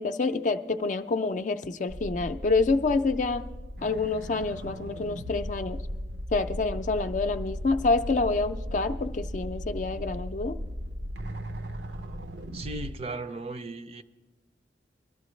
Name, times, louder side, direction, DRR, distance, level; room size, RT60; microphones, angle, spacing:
voice 1, 0.0-3.5 3.8-5.8 6.3-10.6, left 3 dB, 45° left, 0.4 m, -27 dB
sound 1, 1.9-12.9, equal, 85° right, 0.8 m, -37 dB
voice 2, 12.5-14.0, right 3 dB, 35° right, 0.5 m, -36 dB
21.5 x 12.0 x 3.2 m
head